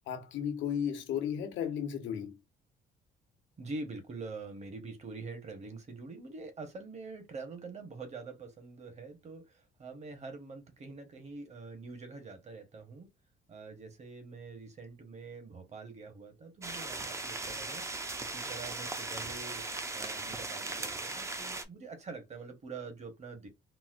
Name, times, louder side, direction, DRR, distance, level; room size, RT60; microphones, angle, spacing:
voice 1, 0.1-2.4, left 8 dB, 85° left, 0.9 m, -34 dB
voice 2, 3.6-13.1 13.5-17.9 18.2-19.7 19.9-23.5, right 3 dB, 35° right, 1.0 m, -45 dB
sound 1, 16.6-21.6, right 3 dB, 15° right, 0.4 m, -38 dB
4.0 x 2.1 x 2.5 m
cardioid pair, 120°, 19 cm